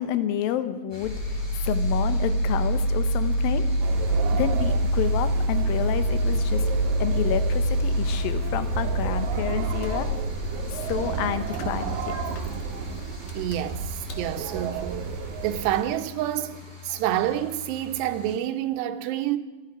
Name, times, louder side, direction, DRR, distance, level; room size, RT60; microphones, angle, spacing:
voice 1, 0.0-3.6 4.3-6.6 7.0-10.1 10.7-12.1, left 11 dB, 70° left, 2.5 m, -29 dB
sound 1, 0.9-18.4, left 5 dB, 10° left, 1.8 m, -45 dB
Engine starting, 1.0-14.3, equal, 55° left, 2.4 m, -26 dB
sound 2, 3.8-15.8, right 5 dB, 70° right, 2.5 m, -33 dB
voice 2, 13.3-15.1 15.4-16.6 16.8-19.4, right 12 dB, 85° right, 3.0 m, -28 dB
26.0 x 10.5 x 4.9 m
omnidirectional pair, 4.8 m